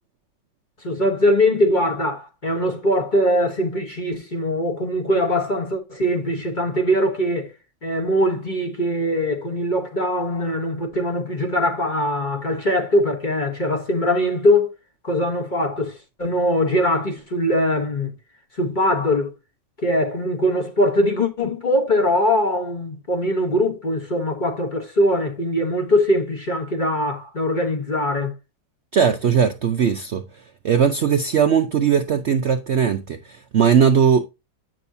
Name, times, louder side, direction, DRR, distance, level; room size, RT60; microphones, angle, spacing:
voice 1, 0.8-7.5 7.8-14.7 15.0-18.1 18.6-19.3 19.8-28.3, left 1 dB, 30° left, 1.0 m, -21 dB
voice 2, 28.9-30.2 30.6-34.2, right 7 dB, 90° right, 0.5 m, -18 dB
8.3 x 6.3 x 2.6 m
omnidirectional pair, 2.0 m